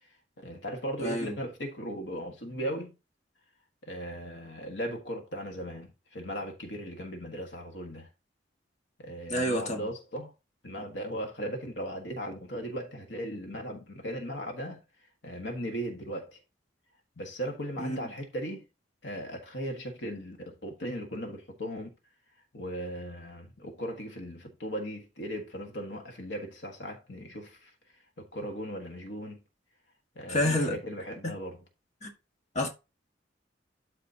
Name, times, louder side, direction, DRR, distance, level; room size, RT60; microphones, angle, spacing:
voice 1, 0.0-2.9 3.8-8.1 9.0-10.3 10.6-14.8 15.2-16.4 17.2-18.6 19.0-21.9 22.5-27.7 28.2-29.4 30.1-31.6, equal, 70° left, 1.6 m, -37 dB
voice 2, 1.0-1.3 9.3-9.9 17.8-18.1 30.3-30.8 32.0-32.1 32.5-32.7, left 1 dB, 40° left, 1.6 m, -28 dB
12.0 x 4.2 x 2.8 m
head